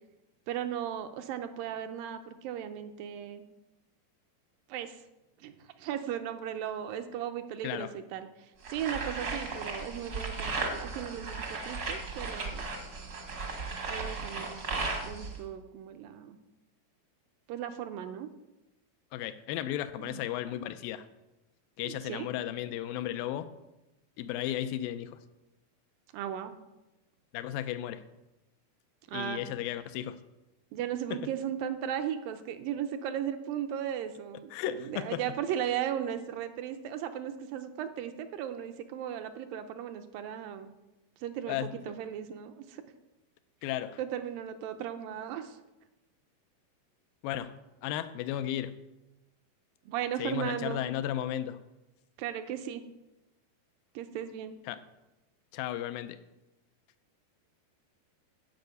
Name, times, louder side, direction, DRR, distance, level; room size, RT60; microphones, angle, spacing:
voice 1, 0.5-3.4 4.7-5.0 5.4-12.7 13.9-16.4 17.5-18.3 20.0-20.2 21.8-22.3 26.1-26.6 29.1-29.4 30.7-40.7 41.2-42.8 44.0-45.6 49.9-50.8 52.2-52.8 54.0-54.6, right 10 dB, 80° right, 8 dB, 2.2 m, -36 dB
sound 1, 8.6-15.4, right 3 dB, 55° right, 1.0 m, -36 dB
voice 2, 19.1-21.1 21.8-23.5 24.2-25.2 27.3-28.0 29.1-30.2 31.1-31.2 34.5-35.2 41.5-41.7 43.6-44.0 47.2-48.8 50.2-51.6 54.7-54.8 55.5-56.2, left 12 dB, 80° left, 12 dB, 2.2 m, -34 dB
10.5 x 5.6 x 8.0 m, 0.99 s
omnidirectional pair, 4.4 m